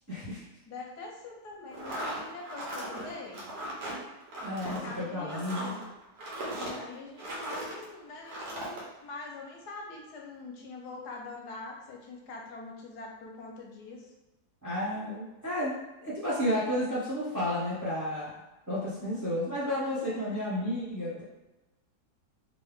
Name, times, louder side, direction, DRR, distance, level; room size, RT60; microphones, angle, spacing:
voice 1, 0.1-0.4 4.4-5.7 14.6-15.7 16.0-18.3 18.7-21.2, left 1 dB, 10° right, -11 dB, 1.3 m, -32 dB
voice 2, 0.7-3.5 4.6-5.8 6.5-14.1 20.1-20.4, left 3 dB, 85° left, -1 dB, 1.3 m, -44 dB
sound 1, 1.7-7.8 8.2-8.8, right 1 dB, 80° right, 1.5 m, -38 dB
3.6 x 2.6 x 3.6 m, 1.0 s
omnidirectional pair, 1.7 m